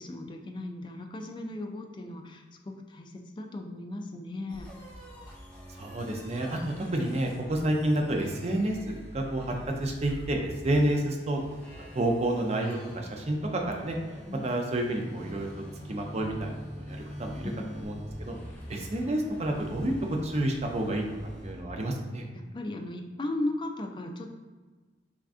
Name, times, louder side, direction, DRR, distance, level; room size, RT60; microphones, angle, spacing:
voice 1, 0.0-4.7 14.3-14.6 17.4-17.8 22.3-24.3, left 1 dB, 25° left, 3 dB, 0.3 m, -37 dB
sound 1, 4.5-21.6, equal, 5° left, 0.7 m, -45 dB
voice 2, 5.7-11.4 11.9-14.0 14.4-15.5 15.9-18.4 18.7-19.9 20.2-21.0 21.4-22.3, right 1 dB, 35° right, 1 dB, 0.5 m, -29 dB
3.6 x 3.5 x 2.5 m, 1.3 s
head